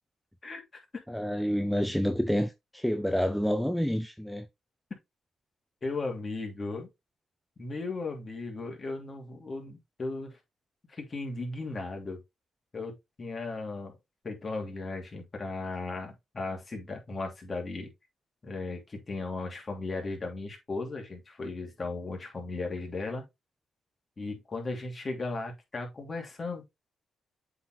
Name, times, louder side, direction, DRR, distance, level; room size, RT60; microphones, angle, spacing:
voice 1, 1.1-4.5, equal, ahead, 0.5 m, -28 dB
voice 2, 5.8-6.9 7.6-10.4 10.9-12.2 12.7-14.0 14.2-17.9 18.4-23.2 24.2-26.8, left 3 dB, 35° left, 2.7 m, -36 dB
7.8 x 4.0 x 3.1 m
cardioid pair, 90°, 0 cm